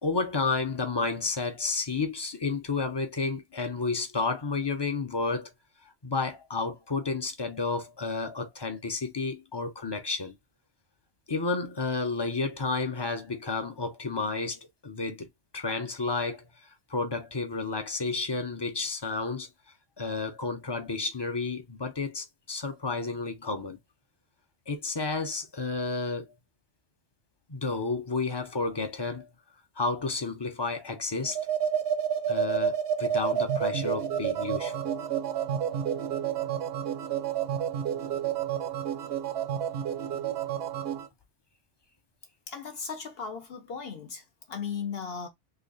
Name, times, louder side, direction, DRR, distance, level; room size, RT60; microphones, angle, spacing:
voice 1, 0.0-5.5 6.0-10.4 11.3-15.3 15.5-19.5 20.0-23.8 24.7-26.3 27.5-29.3 29.8-31.4 32.3-34.8, left 3 dB, 30° left, 0.5 m, -31 dB
sound 1, 31.2-41.1, right 8 dB, 65° right, 0.9 m, -30 dB
voice 2, 42.5-45.3, left 6 dB, 60° left, 0.9 m, -37 dB
3.3 x 2.3 x 3.9 m
omnidirectional pair, 1.2 m